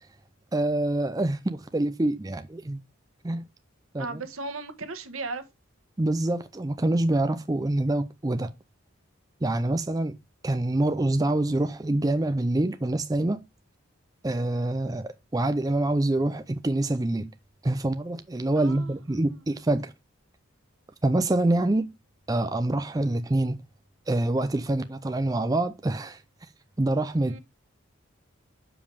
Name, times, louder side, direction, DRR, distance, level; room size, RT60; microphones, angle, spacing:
voice 1, 0.5-2.8 3.2-3.5 3.9-4.2 6.0-8.5 9.4-10.1 10.4-13.4 14.2-17.3 17.6-19.9 21.0-21.9 22.3-23.6 24.1-26.2 26.8-27.4, right 1 dB, 15° right, 0.4 m, -26 dB
voice 2, 4.0-5.4 18.6-18.9 27.3-27.4, right 3 dB, 85° right, 1.2 m, -36 dB
7.0 x 5.2 x 3.4 m
head